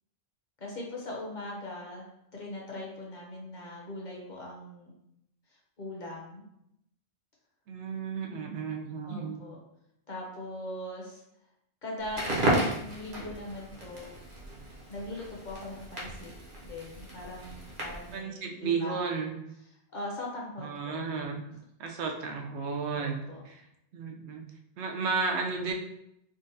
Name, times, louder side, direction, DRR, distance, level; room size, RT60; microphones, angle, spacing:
voice 1, 0.6-2.1 2.3-4.9 5.8-6.4 9.0-9.6 10.1-11.2 11.8-14.1 14.9-16.3 16.6-18.9 19.9-21.0 22.9-23.4, left 1 dB, 50° left, -2 dB, 0.8 m, -40 dB
voice 2, 7.7-9.4 18.1-19.4 20.6-21.4 21.8-23.6 23.9-24.4 24.8-25.7, right 5 dB, 85° right, 3 dB, 0.9 m, -33 dB
Crackle, 12.0-18.2, right 1 dB, 50° right, 0.9 m, -34 dB
3.8 x 2.2 x 2.6 m, 0.80 s
omnidirectional pair, 1.1 m